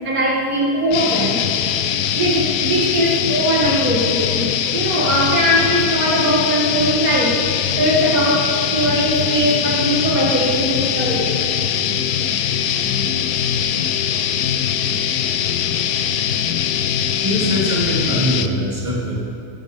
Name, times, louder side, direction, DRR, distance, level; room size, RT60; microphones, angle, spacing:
voice 1, 0.0-1.4 2.1-7.4 7.8-11.4, equal, 70° right, -3 dB, 2.4 m, -20 dB
sound 1, 0.9-18.5, left 9 dB, 90° left, 1.2 m, -21 dB
voice 2, 17.2-19.2, equal, 20° right, -5 dB, 3.1 m, -22 dB
19.5 x 11.5 x 5.0 m, 2.9 s
omnidirectional pair, 1.6 m